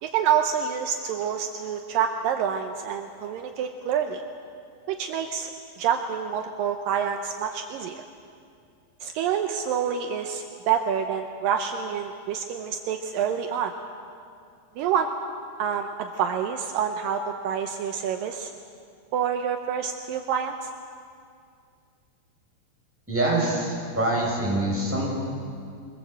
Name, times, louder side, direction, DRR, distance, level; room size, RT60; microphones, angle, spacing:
voice 1, 0.0-4.2 4.9-5.5 5.8-8.0 9.0-13.7 14.8-15.1 15.6-18.5 19.1-20.7, right 8 dB, 80° right, 5 dB, 2.0 m, -27 dB
voice 2, 23.1-25.1, right 1 dB, 5° right, -3 dB, 5.5 m, -25 dB
24.0 x 21.5 x 7.9 m, 2.4 s
omnidirectional pair, 5.1 m